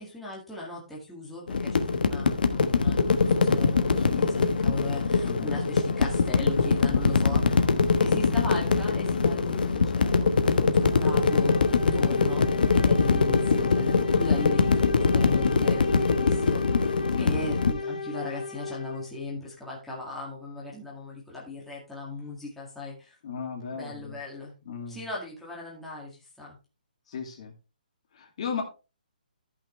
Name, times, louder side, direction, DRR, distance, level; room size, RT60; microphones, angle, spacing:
voice 1, 0.0-7.7 8.0-16.8 17.2-23.2 23.7-24.5 24.9-26.6, left 2 dB, ahead, -6 dB, 2.0 m, -38 dB
sound 1, 1.5-17.7, left 4 dB, 70° left, 1.2 m, -23 dB
voice 2, 5.2-5.5 17.1-17.5 23.2-24.2 24.7-25.1 27.1-27.5 28.1-28.6, left 6 dB, 40° left, 3 dB, 2.3 m, -35 dB
sound 2, 10.8-19.2, left 4 dB, 55° left, 2.0 m, -34 dB
14.0 x 5.8 x 3.2 m, 0.30 s
hypercardioid pair, 170°, 5 cm